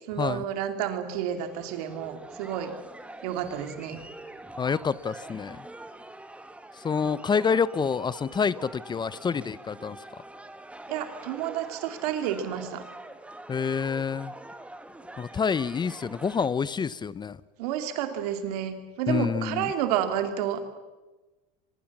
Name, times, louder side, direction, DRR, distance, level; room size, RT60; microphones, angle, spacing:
voice 1, 0.1-2.7 3.2-4.0 10.9-12.8 17.6-20.6, right 10 dB, 80° right, 7 dB, 2.8 m, -30 dB
sound 1, 1.2-16.5, right 1 dB, 5° right, 1.7 m, -45 dB
voice 2, 4.6-5.6 6.8-10.0 13.5-14.3 15.2-17.4 19.1-19.7, left 6 dB, 25° left, 19 dB, 0.7 m, -27 dB
23.5 x 22.5 x 7.3 m, 1.2 s
supercardioid pair, 105°, 19 cm